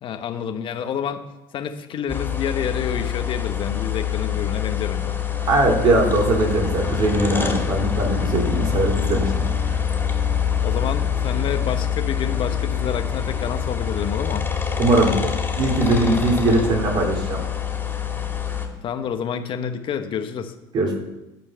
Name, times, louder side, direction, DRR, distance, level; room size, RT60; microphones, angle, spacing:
voice 1, 0.0-1.2 1.5-5.1 10.6-14.4 18.8-20.5, left 7 dB, 50° left, 7 dB, 1.0 m, -28 dB
sound 1, 2.1-18.7, left 8 dB, 20° left, 2.4 m, -25 dB
voice 2, 5.5-9.5 14.8-15.3 15.6-17.4 20.7-21.0, right 2 dB, 50° right, 0 dB, 3.2 m, -20 dB
12.0 x 4.5 x 7.4 m, 0.98 s
supercardioid pair, 90°, 11 cm